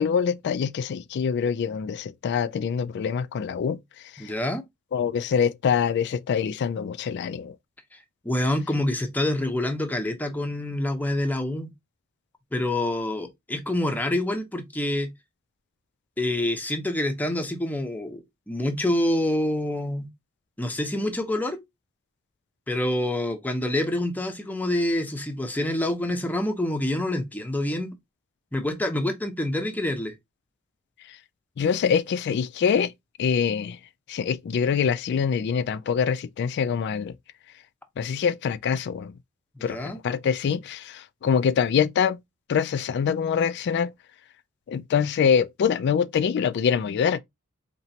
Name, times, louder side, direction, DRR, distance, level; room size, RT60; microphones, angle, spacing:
voice 1, 0.0-3.8 4.1-4.3 4.9-7.6 31.6-32.9 33.2-33.8 34.1-37.1 38.0-39.1 39.6-42.2 42.5-43.9 44.7-47.2, left 7 dB, 55° left, 0.3 m, -24 dB
voice 2, 4.2-4.6 7.9-8.0 8.2-11.7 12.5-15.1 16.2-20.1 20.6-21.6 22.7-28.0 28.5-30.1 39.6-40.0, left 1 dB, 10° left, 0.7 m, -27 dB
4.3 x 3.0 x 2.7 m
head